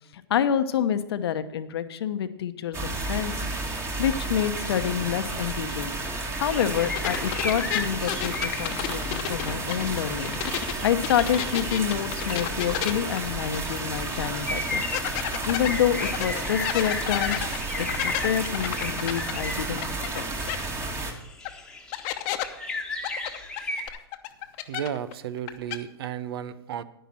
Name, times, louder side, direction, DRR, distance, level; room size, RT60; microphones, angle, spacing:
voice 1, 0.1-3.3 4.0-5.9 6.3-14.8 15.4-17.4 17.8-19.8 20.1-20.3, left 9 dB, 70° left, 10 dB, 1.0 m, -27 dB
sound 1, 2.7-21.1, right 2 dB, 20° right, 1.8 m, -32 dB
sound 2, 6.5-20.1 20.3-23.9, left 2 dB, 5° left, 1.3 m, -36 dB
sound 3, 6.9-10.7 11.0-13.9 14.2-14.3 14.9-20.2 20.5-20.6 21.4-21.5 21.9-22.4 23.0-25.1 25.4-25.8, left 13 dB, 45° left, 1.0 m, -32 dB
voice 2, 24.7-26.8, right 9 dB, 65° right, 16 dB, 0.8 m, -33 dB
10.5 x 10.0 x 4.3 m, 0.92 s
hypercardioid pair, 120°, 13 cm